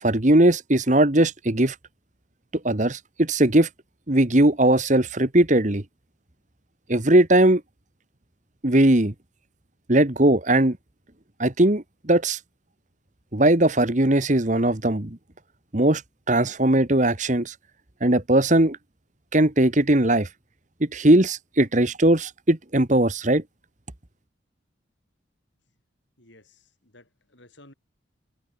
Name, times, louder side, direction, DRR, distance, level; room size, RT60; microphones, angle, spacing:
voice 1, 0.0-1.7 2.6-3.7 4.1-5.8 6.9-7.6 8.6-9.1 9.9-10.8 11.4-12.4 13.3-15.2 15.7-16.0 16.3-17.5 18.0-18.8 19.3-20.3 20.8-23.4, right 1 dB, 40° right, 1.6 m, -19 dB
voice 2, 26.2-27.7, left 2 dB, 70° left, 6.6 m, -54 dB
head